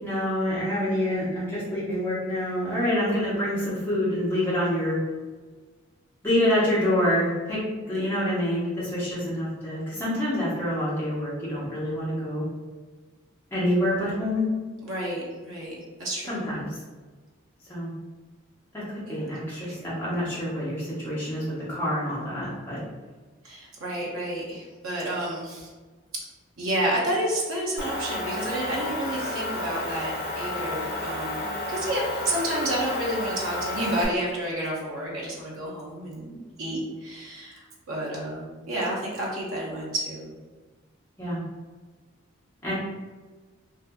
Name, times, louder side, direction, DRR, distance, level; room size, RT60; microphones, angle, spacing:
voice 1, 0.0-5.0 6.2-12.4 13.5-14.5 16.3-16.7 17.7-17.9 18.7-22.8 41.2-41.4 42.6-42.7, left 1 dB, 10° left, -9 dB, 0.8 m, -27 dB
voice 2, 14.8-16.5 19.1-19.3 19.8-19.9 23.4-25.7 26.6-40.3, right 1 dB, 75° right, -3 dB, 0.6 m, -30 dB
Motor vehicle (road) / Engine, 27.8-34.1, left 1 dB, 45° left, 0.5 m, -31 dB
2.5 x 2.5 x 2.3 m, 1.3 s
head